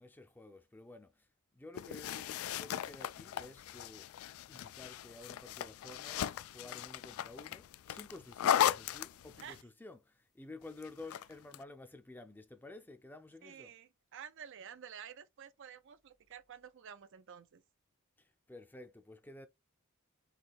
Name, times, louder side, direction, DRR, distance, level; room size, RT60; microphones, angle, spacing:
voice 1, 0.0-4.1 4.5-13.7 18.2-19.5, left 2 dB, 10° left, 0.5 m, -52 dB
sound 1, 1.7-9.6 10.8-11.6, left 10 dB, 75° left, 0.3 m, -37 dB
voice 2, 13.4-17.6, right 8 dB, 60° right, 0.5 m, -51 dB
4.1 x 2.7 x 4.0 m
head